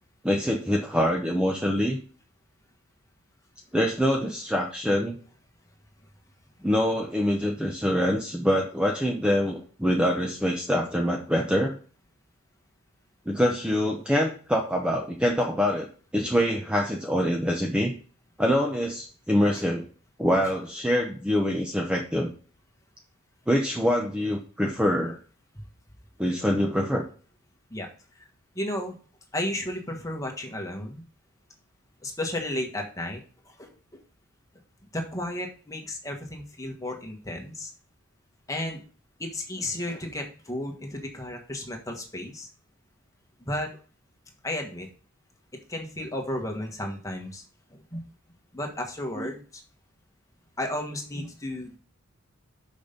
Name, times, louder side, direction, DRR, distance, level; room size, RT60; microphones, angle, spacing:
voice 1, 0.2-2.0 3.7-5.2 6.6-11.7 13.3-15.9 16.1-17.9 18.4-19.9 20.2-22.3 23.5-25.2 26.2-27.0 49.1-49.3, equal, 5° right, 1 dB, 0.8 m, -25 dB
voice 2, 28.5-28.9 29.3-31.0 32.0-33.2 33.4-33.7 34.9-37.7 38.5-38.8 39.2-42.5 43.4-43.7 44.4-44.9 45.7-47.4 47.7-48.0 48.5-49.6 50.6-51.8, left 1 dB, 15° left, 2 dB, 1.5 m, -33 dB
6.6 x 5.3 x 5.2 m, 0.39 s
head